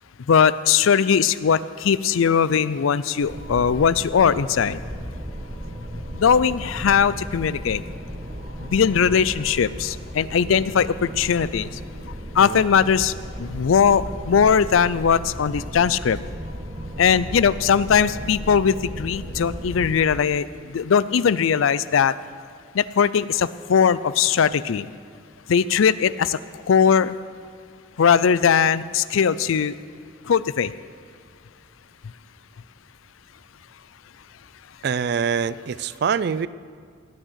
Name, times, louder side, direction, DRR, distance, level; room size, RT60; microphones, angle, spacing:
voice 1, 0.3-4.8 6.1-7.8 8.6-11.8 12.3-16.2 17.0-22.1 22.7-24.9 25.5-27.2 28.0-29.8 30.2-30.7, left 7 dB, 85° left, 17 dB, 0.4 m, -20 dB
sound 1, 3.2-20.0, equal, 40° right, 1.5 m, -35 dB
voice 2, 34.8-36.5, right 6 dB, 55° right, 17 dB, 0.4 m, -24 dB
18.0 x 6.4 x 8.1 m, 2.1 s
head